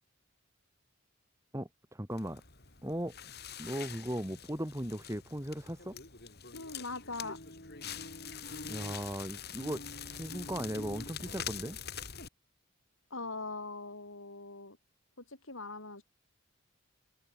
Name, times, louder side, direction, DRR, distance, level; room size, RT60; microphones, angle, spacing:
voice 1, 1.5-2.4 2.8-3.1 3.6-6.0 8.7-11.8, equal, 15° right, 3.5 m, -38 dB
Crackle, 2.1-12.3, left 6 dB, 50° left, 6.9 m, -44 dB
voice 2, 6.5-7.4 13.1-14.8 15.3-16.0, left 3 dB, 75° left, 7.8 m, -41 dB
head